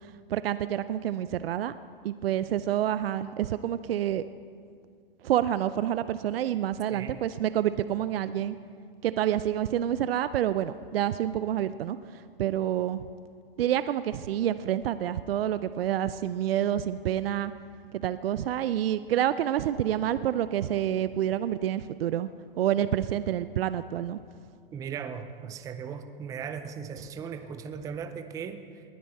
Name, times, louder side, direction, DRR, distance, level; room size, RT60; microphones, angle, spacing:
voice 1, 0.3-1.7 2.0-4.2 5.2-8.6 9.0-13.1 13.6-17.5 17.9-22.3 22.6-24.2, right 11 dB, 80° right, 13 dB, 0.5 m, -28 dB
voice 2, 6.9-7.2 24.7-28.8, right 7 dB, 10° right, 9 dB, 0.4 m, -38 dB
20.0 x 9.4 x 4.2 m, 2.2 s
hypercardioid pair, 125°, 29 cm